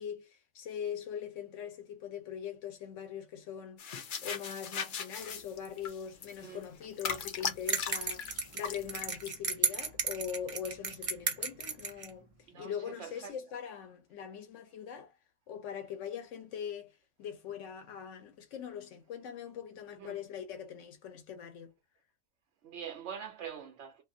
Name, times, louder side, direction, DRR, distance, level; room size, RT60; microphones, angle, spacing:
voice 1, 0.0-3.8 4.2-8.3 8.5-12.3 12.5-15.1 15.5-21.7, left 8 dB, 85° left, 1.0 m, -42 dB
sound 1, 3.8-9.3, left 6 dB, 60° left, 0.6 m, -39 dB
sound 2, 7.7-12.1, right 5 dB, 50° right, 0.4 m, -34 dB
voice 2, 12.4-13.3 20.0-20.2 22.6-24.0, right 8 dB, 70° right, 0.9 m, -44 dB
2.6 x 2.4 x 2.6 m
omnidirectional pair, 1.2 m